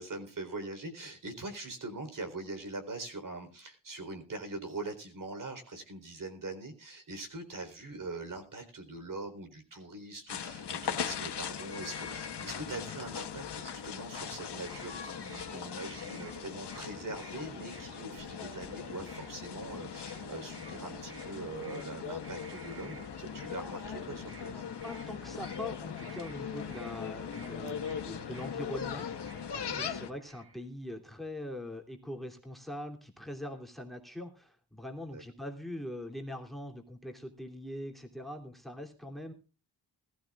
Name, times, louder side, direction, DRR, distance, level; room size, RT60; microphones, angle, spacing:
voice 1, 0.0-24.6 29.6-29.9 35.1-35.2, right 2 dB, 50° right, 7 dB, 4.0 m, -42 dB
sound 1, 10.3-30.1, left 7 dB, 85° left, 1.6 m, -40 dB
sound 2, 13.5-30.6, right 2 dB, 35° right, 6.6 m, -54 dB
sound 3, 18.1-19.6 20.1-22.6 22.9-29.8, right 5 dB, 80° right, 3.6 m, -60 dB
voice 2, 24.8-39.3, left 1 dB, ahead, 3 dB, 2.9 m, -42 dB
21.0 x 14.0 x 2.4 m, 0.33 s
wide cardioid pair, 120°, 40 cm